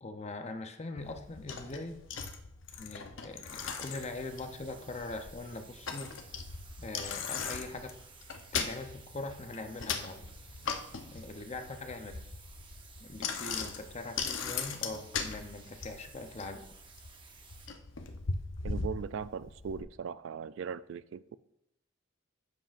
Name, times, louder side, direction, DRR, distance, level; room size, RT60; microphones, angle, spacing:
voice 1, 0.0-2.0 2.8-6.2 6.8-8.0 8.5-10.2 11.1-12.2 13.0-16.7, left 2 dB, 35° left, 0.7 m, -42 dB
Bicycle, 1.0-19.8, left 5 dB, 75° left, 0.8 m, -39 dB
sound 1, 3.5-17.7, right 5 dB, 25° right, 0.9 m, -56 dB
voice 2, 18.6-21.4, right 6 dB, 75° right, 0.3 m, -39 dB
10.5 x 7.7 x 2.5 m
head